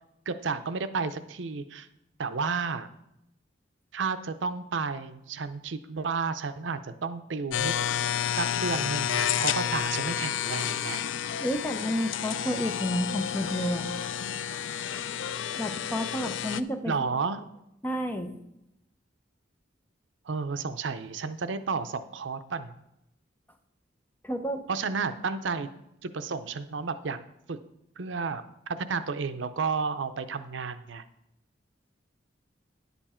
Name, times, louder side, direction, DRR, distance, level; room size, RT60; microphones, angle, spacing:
voice 1, 0.3-1.9 2.2-2.9 3.9-7.7 8.3-11.0 16.8-17.5 20.3-22.8 24.7-25.7 26.0-27.2 27.5-27.6 28.0-31.0, right 5 dB, 75° right, 11 dB, 0.6 m, -32 dB
sound 1, 7.5-16.6, left 9 dB, 85° left, 0.4 m, -30 dB
voice 2, 11.4-13.9 15.6-16.9 17.8-18.4 24.2-24.6, equal, 10° left, 5 dB, 0.8 m, -30 dB
10.0 x 7.0 x 4.4 m, 0.81 s
head